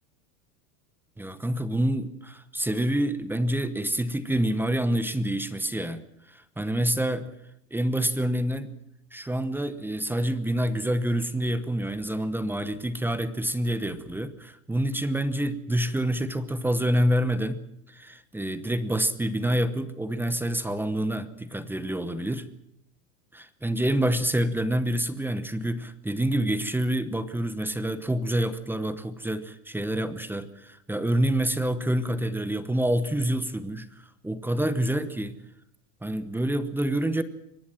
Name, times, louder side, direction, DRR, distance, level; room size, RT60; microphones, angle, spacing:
voice 1, 1.2-6.0 6.3-7.3 7.7-8.7 9.1-22.5 23.3-33.9 34.2-35.3 36.0-37.2, right 1 dB, 5° right, 13 dB, 0.9 m, -27 dB
23.0 x 18.5 x 7.6 m, 0.76 s
supercardioid pair, 150°, 46 cm